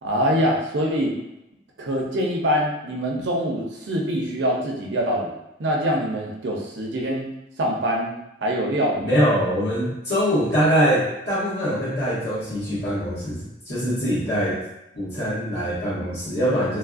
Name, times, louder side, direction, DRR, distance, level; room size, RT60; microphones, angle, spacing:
voice 1, 0.0-1.1 1.8-5.3 5.6-7.3 7.6-8.1 8.4-9.3, equal, 85° right, -1 dB, 0.5 m, -24 dB
voice 2, 9.0-14.6 14.9-16.8, equal, 70° left, -12 dB, 1.4 m, -23 dB
3.1 x 2.3 x 2.4 m, 0.88 s
head